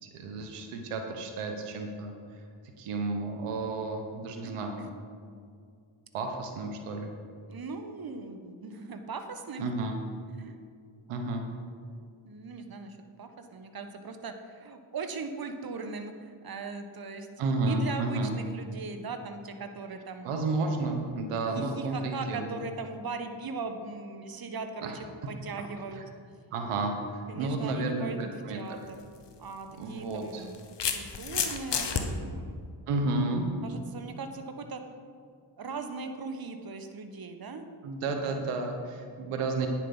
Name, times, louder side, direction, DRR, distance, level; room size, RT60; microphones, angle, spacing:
voice 1, 0.0-2.1 2.8-4.8 6.1-7.1 9.6-10.0 11.1-11.5 17.4-18.3 20.2-22.5 24.8-25.0 25.9-26.0 26.5-28.6 29.8-30.5 32.9-33.4 37.8-39.7, right 3 dB, 90° right, 4 dB, 1.1 m, -32 dB
voice 2, 7.5-9.7 10.4-10.6 12.2-20.3 21.5-26.0 27.3-29.0 29.4-30.6 30.9-32.6 33.6-34.8 35.6-37.7, right 4 dB, 45° right, 7 dB, 1.2 m, -39 dB
sound 1, 28.8-29.0 30.1-32.0, left 7 dB, 55° left, 1.2 m, -30 dB
9.7 x 7.4 x 5.4 m, 2.2 s
supercardioid pair, 45°, 50 cm